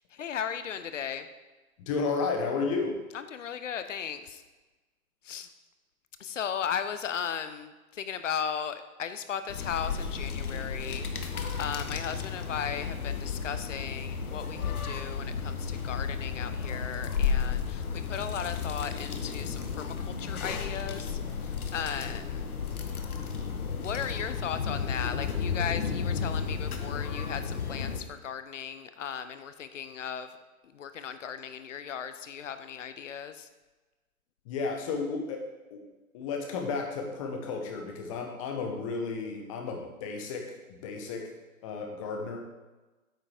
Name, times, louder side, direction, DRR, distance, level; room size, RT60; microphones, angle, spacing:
voice 1, 0.1-1.3 3.1-4.4 5.2-5.5 6.2-22.5 22.8-23.0 23.5-30.3 30.7-33.5, left 8 dB, 60° left, 10 dB, 0.9 m, -36 dB
voice 2, 1.8-3.0 34.4-35.4 35.7-35.8 36.1-41.3 41.6-42.4, left 4 dB, 25° left, 2 dB, 1.1 m, -33 dB
sound 1, 9.5-28.0, left 6 dB, 80° left, 1.3 m, -33 dB
8.9 x 5.8 x 5.0 m, 1.2 s
hypercardioid pair, 155°, 43 cm